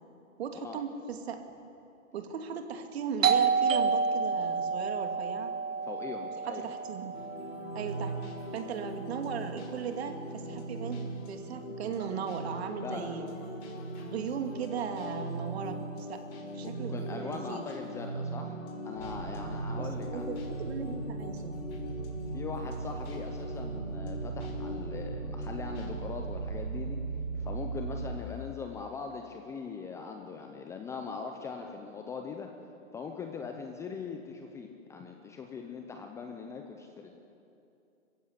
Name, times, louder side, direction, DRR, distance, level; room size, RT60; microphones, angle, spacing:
voice 1, 0.4-1.4 2.1-5.5 6.5-7.2 7.7-8.1 8.5-11.0 11.3-13.3 14.0-15.8 16.1-16.2 16.5-17.7 19.8-21.6, right 7 dB, 50° right, 5 dB, 2.5 m, -37 dB
Doorbell, 3.2-8.6, right 5 dB, 70° right, 1.7 m, -30 dB
voice 2, 5.8-6.7 12.8-13.1 16.6-18.6 18.8-20.4 22.3-27.0 27.3-32.5 32.9-37.2, left 5 dB, 5° left, 3 dB, 0.6 m, -41 dB
sound 1, 7.1-26.0, right 1 dB, 60° left, 6.0 m, -40 dB
sound 2, 19.0-28.2, right 4 dB, 85° right, 3.7 m, -38 dB
26.5 x 15.5 x 8.3 m, 2.7 s
hypercardioid pair, 140°, 40 cm